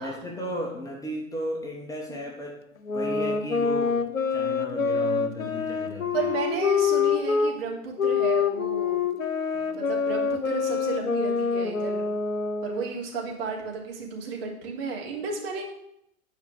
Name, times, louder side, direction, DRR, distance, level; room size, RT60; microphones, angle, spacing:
voice 1, 0.0-2.7 2.9-6.3, left 1 dB, 10° left, 0 dB, 1.4 m, -35 dB
sound 1, 2.8-7.5 8.0-13.0, left 5 dB, 75° left, 1.1 m, -26 dB
voice 2, 6.1-9.0 9.5-12.1 12.6-15.7, right 5 dB, 45° right, -1 dB, 3.2 m, -33 dB
11.5 x 5.0 x 7.6 m, 0.77 s
figure-of-eight pair, 105°, 41 cm